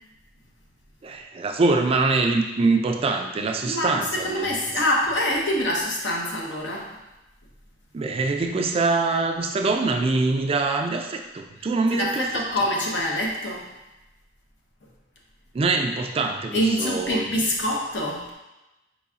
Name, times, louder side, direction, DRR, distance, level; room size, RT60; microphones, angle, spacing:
voice 1, 1.0-4.5 7.9-12.4 15.5-17.3, right 3 dB, 30° right, 4 dB, 0.3 m, -24 dB
voice 2, 3.6-4.0 4.2-6.9 11.9-13.7 16.5-18.2, left 1 dB, 75° left, -2 dB, 0.9 m, -25 dB
4.6 x 4.0 x 2.4 m, 1.0 s
head